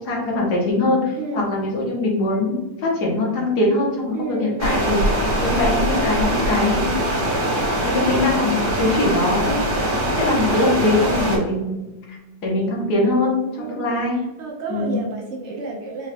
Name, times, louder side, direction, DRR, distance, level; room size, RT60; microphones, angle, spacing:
voice 1, 0.0-6.9 7.5-9.6 9.9-11.9 12.4-14.2 14.7-15.0, left 2 dB, 65° left, -2 dB, 1.6 m, -22 dB
voice 2, 4.1-4.9 13.6-13.8 14.2-16.1, right 3 dB, 85° right, -1 dB, 0.6 m, -31 dB
sound 1, 4.6-11.4, right 1 dB, 60° right, 1.5 m, -22 dB
4.3 x 2.4 x 3.3 m, 1.1 s
omnidirectional pair, 1.9 m